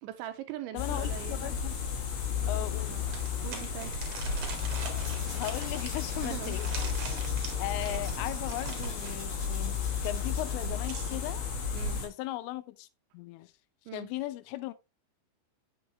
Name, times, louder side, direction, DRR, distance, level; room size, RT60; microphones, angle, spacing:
voice 1, 0.0-1.5 2.5-3.0 3.4-4.3 6.2-6.7 7.4-7.5 11.7-12.0 13.9-14.1, right 13 dB, 80° right, 3.0 m, -42 dB
voice 2, 0.7-1.8 2.5-3.0 5.3-6.7 7.6-11.5 12.0-12.9 13.1-13.5 13.9-14.7, left 15 dB, 90° left, 3.2 m, -37 dB
sound 1, 0.8-12.1, left 6 dB, 60° left, 3.2 m, -33 dB
sound 2, 2.2-2.3 3.1-9.2 10.4-11.4, right 5 dB, 55° right, 2.9 m, -43 dB
sound 3, 4.3-10.8, left 1 dB, 25° left, 4.9 m, -48 dB
8.0 x 7.1 x 3.0 m
omnidirectional pair, 5.6 m